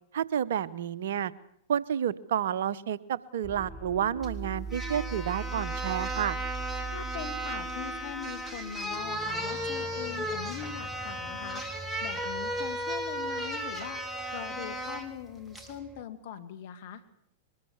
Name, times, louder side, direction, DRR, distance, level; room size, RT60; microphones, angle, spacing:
voice 1, 0.1-1.3 1.7-6.4, right 9 dB, 70° right, 16 dB, 1.0 m, -30 dB
sound 1, 3.4-16.0, right 4 dB, 20° right, 1.3 m, -42 dB
sound 2, 4.2-4.3 4.7-15.1 15.5-15.7, equal, 5° right, 3.5 m, -35 dB
voice 2, 6.9-11.6 12.0-14.0 14.3-17.0, left 9 dB, 60° left, 10 dB, 2.4 m, -41 dB
23.0 x 20.0 x 7.2 m, 0.70 s
hypercardioid pair, 105°, 0 cm